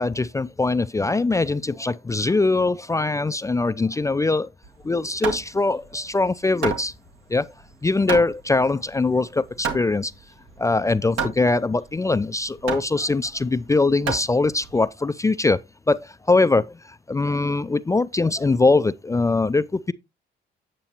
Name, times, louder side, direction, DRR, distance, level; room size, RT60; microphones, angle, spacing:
voice 1, 0.0-4.5 4.8-6.9 7.3-7.5 7.8-10.1 10.6-15.6 15.9-19.9, left 3 dB, 15° left, 0.3 m, -22 dB
Hammer, 4.6-14.9, right 6 dB, 80° right, 1.9 m, -32 dB
8.8 x 6.8 x 2.9 m
cardioid pair, 90°, 20 cm